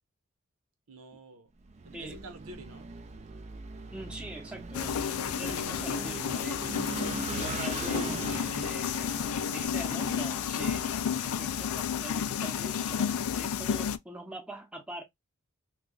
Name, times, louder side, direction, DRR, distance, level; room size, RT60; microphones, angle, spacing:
voice 1, 0.9-1.5 1.8-2.9 9.3-9.6, right 2 dB, 75° right, 0.9 m, -48 dB
Vehicle / Engine, 1.6-11.4, right 4 dB, 30° right, 0.3 m, -41 dB
voice 2, 3.9-6.6 7.4-9.1 9.5-15.0, right 1 dB, 5° right, 0.7 m, -43 dB
sound 1, 4.7-14.0, left 7 dB, 85° left, 0.4 m, -31 dB
3.0 x 2.3 x 3.8 m
head